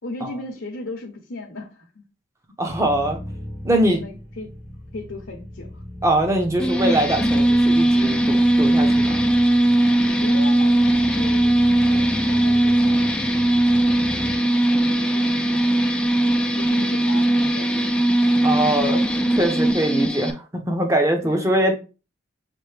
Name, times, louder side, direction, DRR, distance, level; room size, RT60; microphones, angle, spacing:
voice 1, 0.0-2.0 3.7-4.5 4.9-5.8 10.2-14.6 14.8-15.8 16.2-18.0 18.6-19.1 19.9-20.2 21.2-21.5, left 2 dB, 60° left, 0 dB, 0.8 m, -37 dB
voice 2, 2.6-3.2 3.6-4.0 6.0-9.1 18.4-19.0 19.4-21.7, right 1 dB, 15° right, 3 dB, 0.7 m, -22 dB
sound 1, 2.6-14.4, left 1 dB, 35° right, 1.3 m, -37 dB
sound 2, 6.6-20.3, right 1 dB, 5° left, 0.3 m, -19 dB
5.9 x 2.7 x 3.2 m, 0.31 s
head